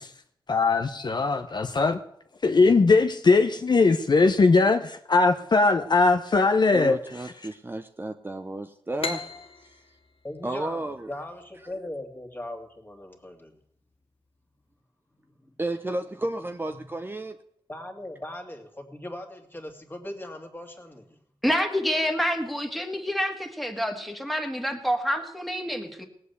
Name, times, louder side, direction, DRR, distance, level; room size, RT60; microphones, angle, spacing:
voice 1, 0.5-2.0 2.4-7.0, left 3 dB, 45° left, 7 dB, 0.8 m, -20 dB
voice 2, 6.7-9.3 9.6-9.8 10.4-11.1 15.6-17.4, right 2 dB, 20° right, 7 dB, 0.7 m, -32 dB
sound 1, 9.0-12.4, left 4 dB, 70° left, 1.2 m, -38 dB
voice 3, 10.2-13.6 17.7-21.2, left 1 dB, 20° left, 3 dB, 2.4 m, -39 dB
voice 4, 21.4-26.0, equal, ahead, 4 dB, 1.9 m, -27 dB
18.5 x 7.8 x 8.2 m, 0.70 s
wide cardioid pair, 115°, 10 cm